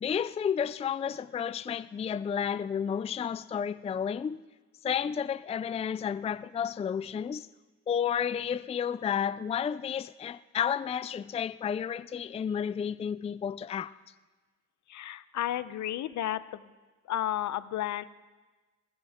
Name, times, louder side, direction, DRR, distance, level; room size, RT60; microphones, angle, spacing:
voice 1, 0.0-4.4 4.8-7.5 7.9-13.9, left 8 dB, 20° left, 16 dB, 0.3 m, -31 dB
voice 2, 14.9-16.6 17.1-18.0, left 12 dB, 70° left, 15 dB, 0.8 m, -32 dB
19.5 x 16.0 x 3.6 m, 1.3 s
cardioid pair, 90°, 30 cm